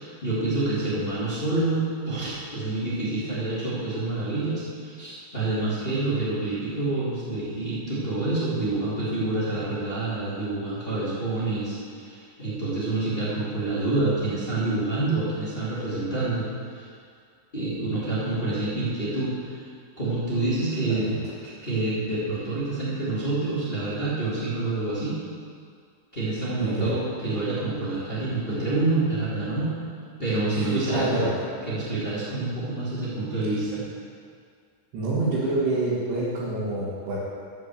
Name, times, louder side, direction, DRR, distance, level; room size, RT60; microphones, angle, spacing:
voice 1, 0.0-16.8 17.5-19.6 20.0-21.2 21.4-25.2 26.1-29.7 30.2-31.2 31.7-33.8, right 2 dB, 30° left, -10 dB, 0.9 m, -27 dB
voice 2, 26.6-27.0 30.5-31.3 34.9-37.2, right 2 dB, 65° right, -10 dB, 4.0 m, -27 dB
11.0 x 6.2 x 7.7 m, 2.2 s
omnidirectional pair, 5.5 m